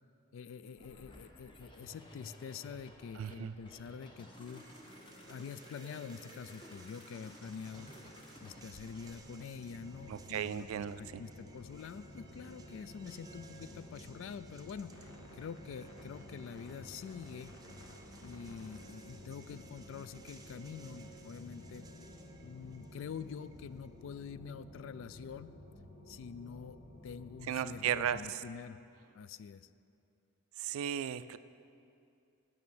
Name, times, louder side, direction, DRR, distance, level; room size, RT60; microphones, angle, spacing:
voice 1, 0.3-4.7 5.3-7.9 8.4-10.7 11.0-15.1 15.3-17.5 18.2-21.9 22.4-25.6 26.1-28.8 29.1-29.7, left 6 dB, 65° left, 15 dB, 0.3 m, -46 dB
sound 1, 0.8-9.5, equal, 25° left, 1.0 m, -54 dB
voice 2, 3.1-3.5 10.1-11.2 27.5-28.4 30.6-31.4, right 9 dB, 80° right, 15 dB, 0.3 m, -35 dB
sound 2, 4.5-24.0, right 4 dB, 20° right, 0.6 m, -59 dB
sound 3, 9.6-28.2, left 1 dB, 85° left, 1.3 m, -53 dB
9.4 x 5.9 x 7.1 m, 2.6 s
head